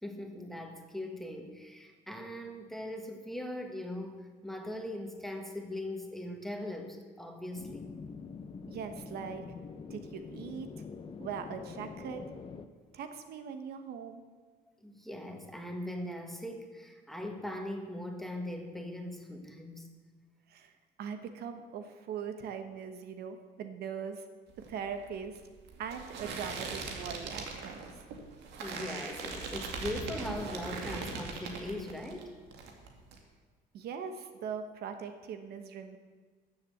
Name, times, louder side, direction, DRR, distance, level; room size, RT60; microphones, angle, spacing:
voice 1, 0.0-8.0 11.2-11.3 14.8-19.9 28.6-32.3, left 1 dB, ahead, 3 dB, 1.7 m, -40 dB
sound 1, 7.6-12.7, left 5 dB, 30° left, 0.8 m, -45 dB
voice 2, 8.7-9.4 9.9-10.8 11.2-12.2 12.9-14.2 20.5-20.7 21.0-24.2 24.7-25.4 25.8-28.0 33.7-36.0, right 7 dB, 70° right, 8 dB, 1.1 m, -41 dB
sound 2, 24.5-32.2 32.5-33.2, right 4 dB, 85° right, 2.1 m, -40 dB
13.5 x 7.4 x 7.9 m, 1.5 s
cardioid pair, 110°, 17 cm